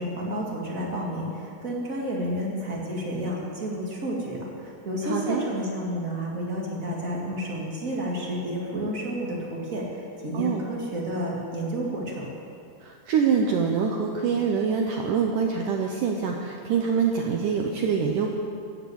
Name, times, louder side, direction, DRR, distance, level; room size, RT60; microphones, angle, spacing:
voice 1, 0.0-12.3, equal, 30° right, -3 dB, 1.5 m, -31 dB
voice 2, 5.0-5.4 10.3-10.6 12.8-18.3, right 6 dB, 80° right, 2 dB, 1.8 m, -25 dB
15.0 x 8.8 x 8.0 m, 2.5 s
omnidirectional pair, 4.9 m